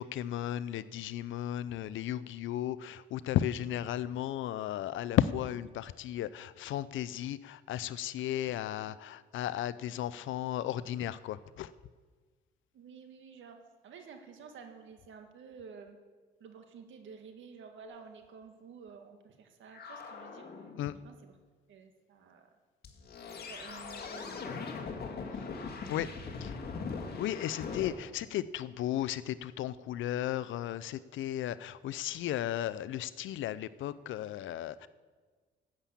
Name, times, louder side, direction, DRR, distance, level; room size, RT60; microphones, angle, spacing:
voice 1, 0.0-11.7 20.8-21.0 25.9-26.1 26.4-26.5 27.1-34.9, left 12 dB, 75° left, 16 dB, 0.6 m, -34 dB
voice 2, 12.7-16.0 16.4-20.5 21.0-21.3 21.7-22.4 23.4-25.2 26.1-26.3, right 6 dB, 75° right, 5 dB, 1.8 m, -52 dB
sound 1, 17.8-18.0 19.7-21.0 22.8-27.9, left 5 dB, 55° left, 2.0 m, -41 dB
13.0 x 7.5 x 8.5 m, 1.4 s
cardioid pair, 90°, 20 cm